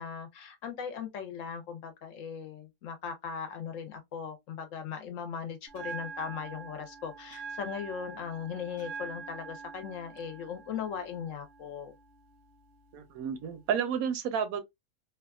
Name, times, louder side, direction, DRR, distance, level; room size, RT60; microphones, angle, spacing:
voice 1, 0.0-11.9, left 7 dB, 65° left, 1.0 m, -38 dB
Bell, 5.7-13.7, right 5 dB, 60° right, 0.7 m, -45 dB
voice 2, 12.9-14.6, right 7 dB, 80° right, 1.1 m, -31 dB
2.8 x 2.3 x 2.3 m
omnidirectional pair, 1.5 m